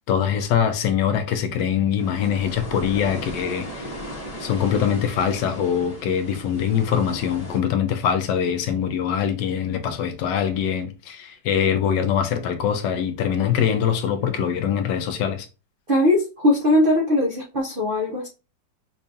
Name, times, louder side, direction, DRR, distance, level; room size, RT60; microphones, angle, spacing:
voice 1, 0.1-3.9 4.4-15.5, left 8 dB, 75° left, 1.1 m, -23 dB
sound 1, 2.0-7.6, equal, 30° left, 0.7 m, -37 dB
voice 2, 15.9-18.3, left 1 dB, 70° right, 0.5 m, -20 dB
5.4 x 2.3 x 2.6 m
omnidirectional pair, 2.1 m